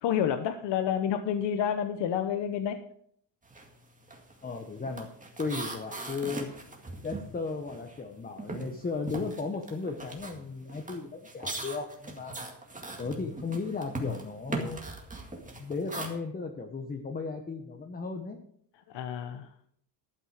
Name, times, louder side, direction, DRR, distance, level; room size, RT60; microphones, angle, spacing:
voice 1, 0.0-2.8 18.9-19.5, left 9 dB, 70° left, 8 dB, 1.0 m, -29 dB
sound 1, 3.5-3.7 4.0-8.1 8.4-16.1, right 2 dB, 15° right, 2.1 m, -40 dB
voice 2, 4.4-5.1 5.4-6.5 7.0-12.3 13.0-14.8 15.6-18.4, left 4 dB, 20° left, 3 dB, 1.0 m, -35 dB
12.0 x 8.9 x 5.0 m, 0.65 s
cardioid pair, 130°, 44 cm